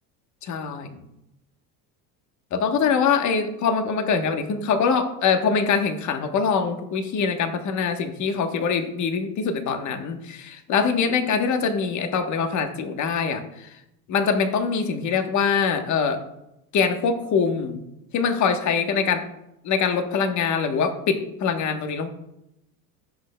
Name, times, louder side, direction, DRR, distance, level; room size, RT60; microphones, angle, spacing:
voice 1, 0.4-1.0 2.5-13.7 14.1-16.2 16.7-17.8 18.1-19.2 19.6-22.1, left 6 dB, 40° left, 7 dB, 1.1 m, -23 dB
16.0 x 6.6 x 2.2 m, 0.85 s
supercardioid pair, 120°, 44 cm